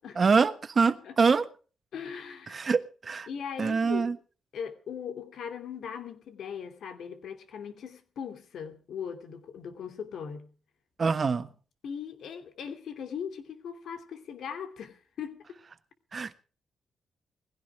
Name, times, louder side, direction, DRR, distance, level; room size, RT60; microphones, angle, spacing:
voice 1, 0.1-1.5 2.5-3.3 3.6-4.2 11.0-11.5 16.1-16.3, right 5 dB, 45° right, 1.3 m, -25 dB
voice 2, 1.9-2.6 3.3-4.1 4.5-10.5 11.8-15.4, left 7 dB, 75° left, 2.9 m, -39 dB
20.5 x 16.0 x 3.4 m
cardioid pair, 90°, 0 cm